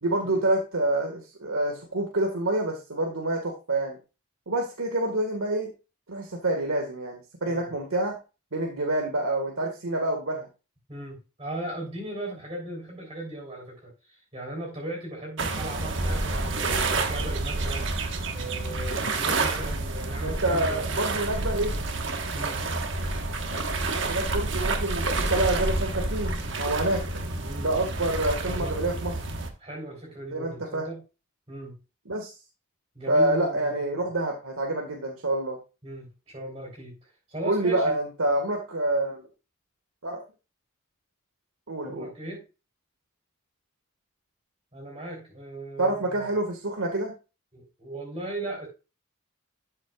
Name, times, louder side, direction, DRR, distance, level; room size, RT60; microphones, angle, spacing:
voice 1, 0.0-4.0 4.5-5.7 6.1-8.2 8.5-10.5 20.2-21.7 24.1-27.0 27.6-29.1 30.3-30.9 32.1-32.3 33.1-35.6 37.4-39.3 40.0-40.2 41.7-42.1 45.8-47.1, right 1 dB, 85° right, 2 dB, 1.7 m, -27 dB
voice 2, 10.9-21.5 22.3-22.6 27.4-27.7 28.4-28.8 29.6-31.0 31.5-31.7 33.0-34.0 35.8-37.9 41.8-42.4 44.7-46.3 47.5-48.7, right 1 dB, 25° right, -1 dB, 3.6 m, -38 dB
sound 1, 15.4-29.5, right 2 dB, 55° right, 1.4 m, -29 dB
12.5 x 7.6 x 2.4 m, 0.30 s
head